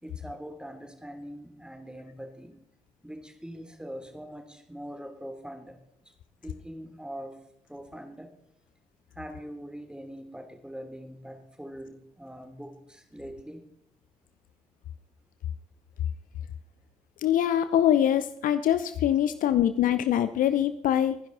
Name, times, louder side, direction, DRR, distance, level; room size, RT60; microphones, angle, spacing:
voice 1, 0.0-2.6 3.0-6.1 6.4-7.4 7.7-8.4 9.1-13.7, equal, 5° right, 5 dB, 3.2 m, -42 dB
voice 2, 17.2-21.2, left 10 dB, 55° left, 12 dB, 0.8 m, -24 dB
23.0 x 10.5 x 4.0 m, 0.75 s
figure-of-eight pair, 40°, 16 cm